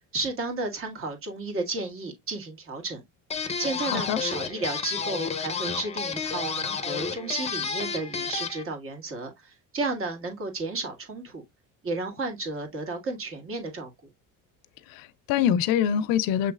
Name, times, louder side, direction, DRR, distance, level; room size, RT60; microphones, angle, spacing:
voice 1, 0.1-3.0 3.6-11.4 11.8-13.9, right 3 dB, 40° right, 1.8 m, -33 dB
sound 1, 3.3-8.6, left 5 dB, 20° left, 0.7 m, -31 dB
voice 2, 3.9-4.2 14.9-16.5, left 9 dB, 85° left, 0.6 m, -24 dB
6.8 x 3.1 x 2.3 m
cardioid pair, 135°, 34 cm